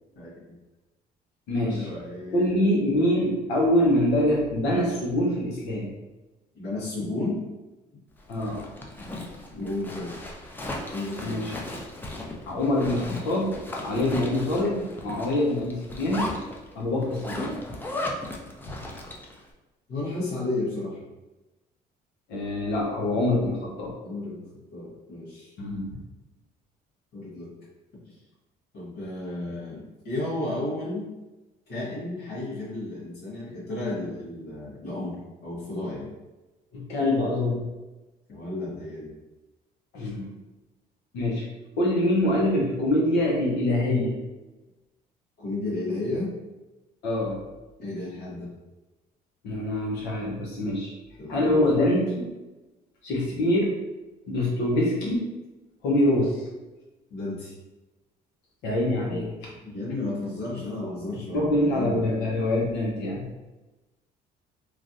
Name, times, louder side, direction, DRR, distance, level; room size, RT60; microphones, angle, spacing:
voice 1, 0.1-0.5 1.6-2.5 6.5-7.5 9.5-10.1 10.9-11.4 19.9-21.0 24.0-25.5 27.1-27.5 28.7-31.1 31.7-36.1 38.3-39.1 45.4-46.3 47.8-48.5 51.2-51.6 57.1-57.5 59.1-59.2 59.6-62.0, left 2 dB, 70° left, -9 dB, 1.4 m, -33 dB
voice 2, 1.5-1.9 2.3-5.9 8.3-8.6 11.2-11.5 12.5-16.3 16.7-17.5 18.7-18.8 22.3-23.9 25.6-26.0 36.7-37.6 39.9-40.3 41.1-41.5 41.8-44.1 47.0-47.4 49.4-50.9 51.3-52.3 53.0-53.7 54.3-55.2 55.8-56.4 58.6-59.5 61.3-63.2, left 1 dB, 90° left, -2 dB, 1.0 m, -25 dB
Zipper (clothing), 8.2-19.4, left 1 dB, 10° left, 0.4 m, -36 dB
3.1 x 2.5 x 2.6 m, 1.1 s
cardioid pair, 110°, 17 cm